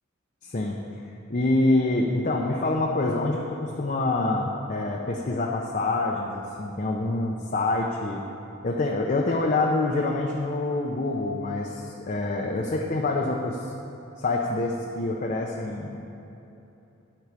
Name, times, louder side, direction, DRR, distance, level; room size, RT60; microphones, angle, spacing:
voice 1, 0.4-1.0 1.3-8.2 8.6-13.7 14.2-16.1, left 2 dB, 40° left, -1 dB, 0.7 m, -26 dB
12.0 x 4.7 x 8.3 m, 3.0 s
head